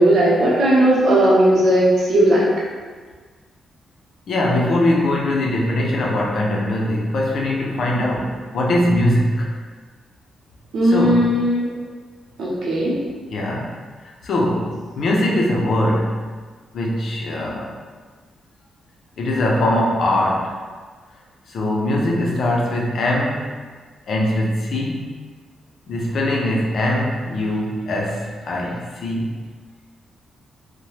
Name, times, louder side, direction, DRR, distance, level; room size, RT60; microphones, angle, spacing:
voice 1, 0.0-2.5 10.7-11.7 12.4-12.9, right 1 dB, 70° right, -6 dB, 0.8 m, -16 dB
voice 2, 4.3-9.5 10.8-11.4 13.3-13.7 14.2-16.3 16.7-17.7 19.2-20.5 21.5-23.5 24.1-25.1 25.9-29.3, left 1 dB, 55° left, -2 dB, 0.5 m, -21 dB
2.8 x 2.1 x 3.1 m, 1.5 s
cardioid pair, 145°, 0 cm